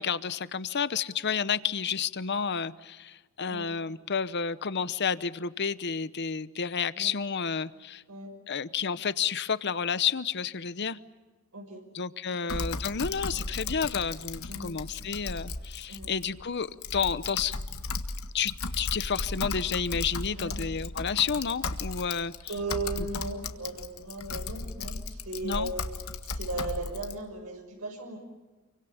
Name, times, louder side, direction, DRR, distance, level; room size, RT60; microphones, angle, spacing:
voice 1, 0.0-8.0 8.5-11.0 11.9-17.6 18.3-22.3 25.4-25.7, left 6 dB, 50° left, 15 dB, 0.9 m, -30 dB
voice 2, 11.5-11.8 12.5-12.6 13.3-13.4 14.5-14.7 15.9-16.1 20.4-20.6 22.5-25.8 26.3-28.2, right 2 dB, 80° right, 1 dB, 6.0 m, -36 dB
Typing, 12.5-27.1, left 3 dB, 75° left, 1.7 m, -36 dB
28.5 x 24.5 x 7.2 m, 1.3 s
head